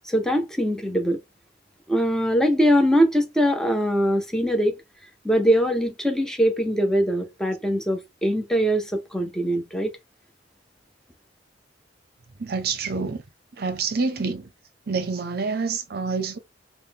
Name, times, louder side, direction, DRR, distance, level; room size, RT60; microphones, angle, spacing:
voice 1, 0.1-1.2 1.9-4.8 5.2-9.9, equal, 5° left, 0.4 m, -22 dB
voice 2, 12.4-13.2 13.6-14.5 14.9-16.4, right 4 dB, 55° right, 0.6 m, -27 dB
3.5 x 2.0 x 2.7 m
head